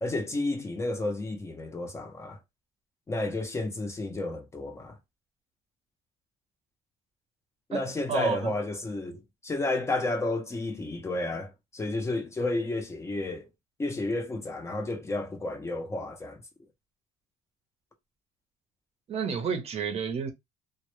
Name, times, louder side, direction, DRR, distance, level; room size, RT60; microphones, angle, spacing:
voice 1, 0.0-2.4 3.1-5.0 7.7-13.5 13.8-16.4, left 2 dB, 20° left, 0.5 m, -31 dB
voice 2, 8.1-8.5 19.1-20.3, right 6 dB, 45° right, 0.6 m, -30 dB
2.0 x 2.0 x 3.0 m
cardioid pair, 110°, 14 cm